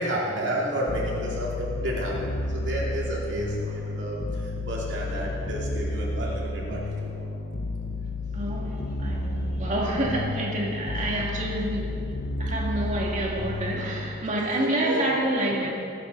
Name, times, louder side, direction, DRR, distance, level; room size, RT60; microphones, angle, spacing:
voice 1, 0.0-7.2 10.9-11.0 14.4-15.1, right 1 dB, 70° right, -4 dB, 2.6 m, -31 dB
sound 1, 0.9-14.2, left 2 dB, 85° left, 1.0 m, -31 dB
voice 2, 8.3-12.0 12.4-15.7, right 1 dB, 40° right, -3 dB, 2.4 m, -28 dB
23.0 x 9.2 x 4.1 m, 2.7 s
head